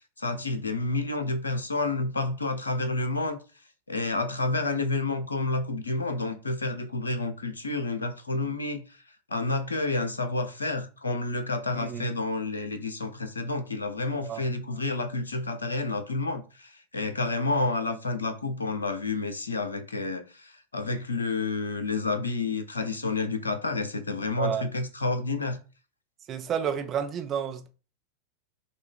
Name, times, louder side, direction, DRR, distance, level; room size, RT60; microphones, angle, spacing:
voice 1, 0.2-3.4 3.9-8.9 9.3-25.6, left 3 dB, 75° left, 0.6 m, -29 dB
voice 2, 11.7-12.1 14.2-14.5 24.4-24.7 26.3-27.7, right 8 dB, 30° right, 0.7 m, -31 dB
6.0 x 2.4 x 3.7 m
figure-of-eight pair, 90°, 0 cm